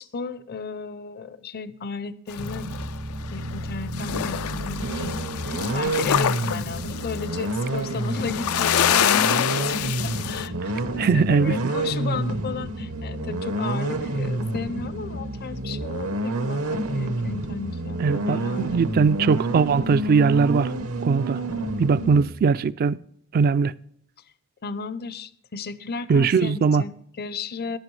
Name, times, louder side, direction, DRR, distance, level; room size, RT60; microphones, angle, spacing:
voice 1, 0.0-2.7 3.3-18.8 22.0-22.2 24.6-27.8, left 5 dB, 45° left, 0.6 m, -34 dB
sound 1, 2.3-3.7 3.9-10.5, left 10 dB, 90° left, 0.4 m, -26 dB
sound 2, 2.4-22.3, right 1 dB, 80° right, 1.0 m, -29 dB
voice 2, 11.0-11.6 18.0-20.7 21.0-21.4 21.8-23.0 23.3-23.7 26.1-26.8, right 5 dB, 45° right, 0.3 m, -20 dB
14.5 x 10.5 x 3.2 m
head